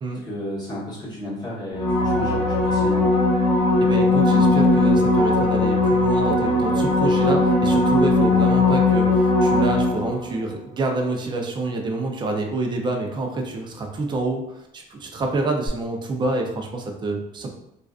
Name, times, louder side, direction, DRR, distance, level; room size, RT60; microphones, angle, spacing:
voice 1, 0.2-3.2, equal, 25° left, -8 dB, 0.9 m, -32 dB
sound 1, 1.7-10.3 15.7-15.8, left 2 dB, 70° left, 1.1 m, -19 dB
voice 2, 3.8-17.5, right 2 dB, 25° right, 2 dB, 0.4 m, -27 dB
2.4 x 2.3 x 2.3 m, 0.81 s
cardioid pair, 110°, 17 cm